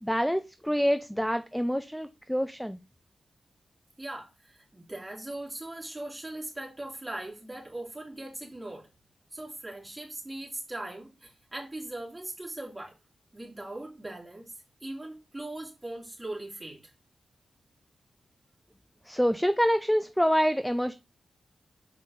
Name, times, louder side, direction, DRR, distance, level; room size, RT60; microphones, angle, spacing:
voice 1, 0.0-2.8 19.0-20.9, equal, ahead, 10 dB, 0.4 m, -26 dB
voice 2, 4.0-8.9 9.3-12.9 13.3-14.5 14.8-16.8, right 1 dB, 15° right, -3 dB, 3.1 m, -40 dB
6.4 x 4.9 x 4.1 m, 0.27 s
wide cardioid pair, 110°, 0 cm